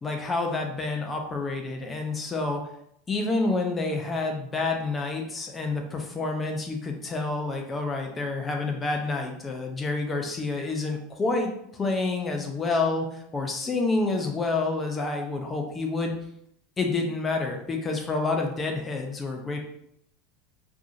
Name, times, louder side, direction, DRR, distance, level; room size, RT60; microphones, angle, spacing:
voice 1, 0.0-2.7 3.1-16.1 16.8-19.6, left 3 dB, 25° left, 3 dB, 0.8 m, -28 dB
4.4 x 3.0 x 2.7 m, 0.73 s
figure-of-eight pair, 80°, 0 cm